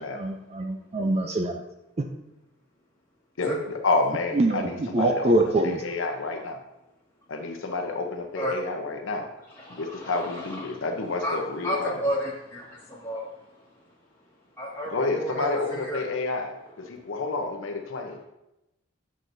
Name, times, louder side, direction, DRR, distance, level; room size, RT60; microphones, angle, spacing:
voice 1, 0.0-1.6 2.0-2.1 4.3-5.8, right 2 dB, 30° right, 4 dB, 0.4 m, -24 dB
voice 2, 3.4-5.3 5.6-6.6 7.3-9.3 9.7-12.0 14.9-18.2, left 3 dB, 75° left, 4 dB, 0.8 m, -29 dB
voice 3, 9.5-10.8 11.2-13.8 14.6-16.0 17.0-17.1 17.9-18.1, equal, 10° left, -7 dB, 1.8 m, -32 dB
7.7 x 6.3 x 2.7 m, 0.91 s
head